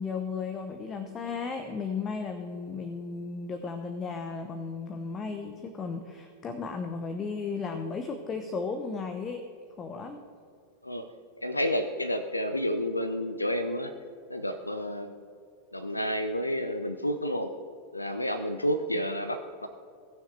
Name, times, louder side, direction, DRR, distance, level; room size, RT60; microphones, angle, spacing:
voice 1, 0.0-9.4 9.8-10.2, left 4 dB, 25° left, 6 dB, 0.8 m, -35 dB
voice 2, 11.4-13.9 14.3-15.1 15.7-17.5 17.9-19.7, equal, 85° left, 9 dB, 0.6 m, -30 dB
17.5 x 6.4 x 3.3 m, 2.3 s
figure-of-eight pair, 90°, 0 cm